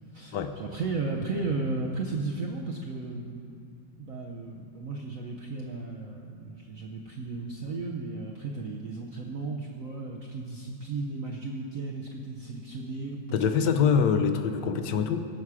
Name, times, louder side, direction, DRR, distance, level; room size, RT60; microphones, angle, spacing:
voice 1, 0.1-3.6 4.0-14.1, right 3 dB, 60° right, -1 dB, 0.9 m, -35 dB
voice 2, 13.3-15.3, left 6 dB, 70° left, 8 dB, 1.2 m, -24 dB
17.5 x 6.0 x 4.8 m, 2.5 s
omnidirectional pair, 2.1 m